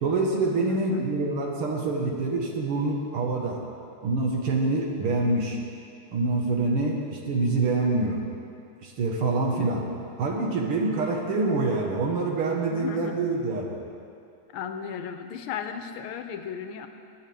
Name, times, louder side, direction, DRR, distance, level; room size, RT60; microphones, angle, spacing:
voice 1, 0.0-3.6 4.0-5.6 6.1-8.2 8.8-9.8 10.2-13.8, right 3 dB, 90° right, -1 dB, 2.4 m, -26 dB
voice 2, 0.7-1.1 12.7-13.2 14.5-16.9, left 7 dB, 85° left, 7 dB, 1.6 m, -35 dB
19.0 x 10.0 x 3.6 m, 2.5 s
omnidirectional pair, 2.3 m